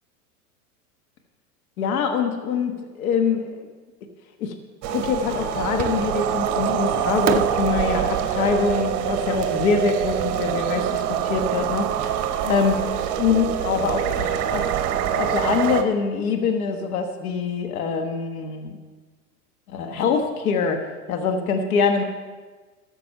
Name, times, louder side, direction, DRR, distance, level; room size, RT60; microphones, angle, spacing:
voice 1, 1.8-3.7 4.4-4.6 4.9-12.9 13.2-14.7 15.1-18.8 19.7-22.0, left 5 dB, 70° left, 5 dB, 1.3 m, -24 dB
sound 1, 4.8-15.8, right 10 dB, 40° right, 1.0 m, -25 dB
Fireworks, 5.8-6.4 7.3-10.4, right 9 dB, 20° right, 0.4 m, -32 dB
14.0 x 6.7 x 5.4 m, 1.4 s
hypercardioid pair, 105°, 45 cm